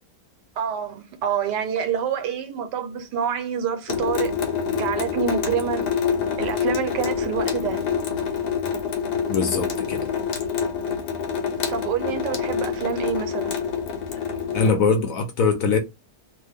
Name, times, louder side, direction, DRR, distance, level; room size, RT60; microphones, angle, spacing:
voice 1, 0.6-4.3 4.7-5.9 6.4-7.8 11.7-13.6, right 8 dB, 85° right, 1.3 m, -27 dB
Water tap faucet / Sink (filling or washing) / Drip, 3.9-14.7, left 7 dB, 90° left, 1.3 m, -26 dB
voice 2, 9.3-10.1 14.5-15.8, left 5 dB, 65° left, 0.9 m, -22 dB
2.9 x 2.4 x 3.4 m
omnidirectional pair, 1.8 m